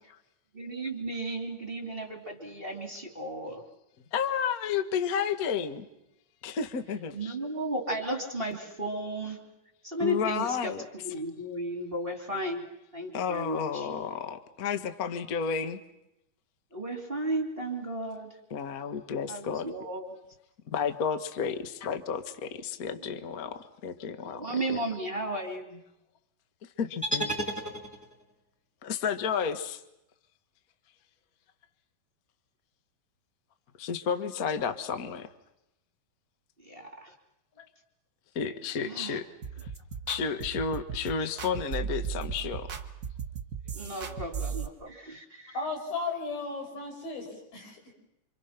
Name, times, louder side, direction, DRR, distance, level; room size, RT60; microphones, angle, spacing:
voice 1, 0.5-3.6 7.1-9.4 9.8-12.6 12.9-13.9 16.7-18.3 19.3-20.1 24.4-25.8 36.6-37.1 38.8-39.2 42.2-42.3 43.7-45.5, right 1 dB, 15° right, 2.5 m, -34 dB
voice 2, 4.1-5.9 6.4-7.4 10.0-10.8 13.1-15.8 18.5-19.7 20.7-24.8 26.8-27.3 28.8-29.8 33.8-35.3 37.6-37.7 38.3-39.3 40.1-42.7, left 6 dB, 70° left, 0.8 m, -32 dB
sound 1, 27.0-28.3, equal, 10° left, 0.8 m, -32 dB
sound 2, 39.4-44.7, right 7 dB, 80° right, 0.8 m, -36 dB
voice 3, 45.5-47.9, left 3 dB, 90° left, 7.6 m, -35 dB
29.0 x 27.0 x 5.9 m
omnidirectional pair, 4.1 m